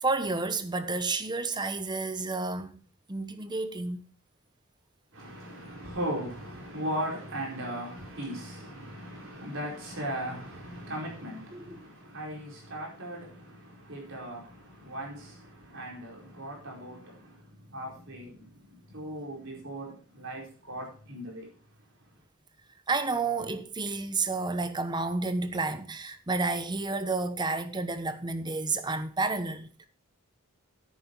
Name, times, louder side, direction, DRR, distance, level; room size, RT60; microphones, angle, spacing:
voice 1, 0.0-2.8 3.1-4.0 11.5-11.9 22.9-29.7, right 3 dB, 20° right, 0.9 m, -30 dB
voice 2, 5.1-21.5, right 1 dB, 65° right, 4.8 m, -38 dB
9.9 x 8.9 x 4.6 m
head